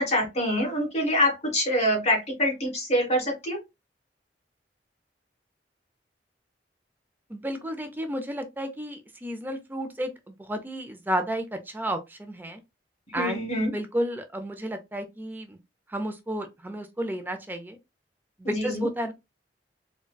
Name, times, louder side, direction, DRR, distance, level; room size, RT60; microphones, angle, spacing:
voice 1, 0.0-3.6 13.2-13.7 18.4-18.9, equal, 40° left, 1.7 m, -25 dB
voice 2, 7.3-12.6 13.1-13.4 13.7-15.6 15.9-17.8 18.4-19.1, equal, 10° right, 0.4 m, -32 dB
3.8 x 2.2 x 2.2 m
head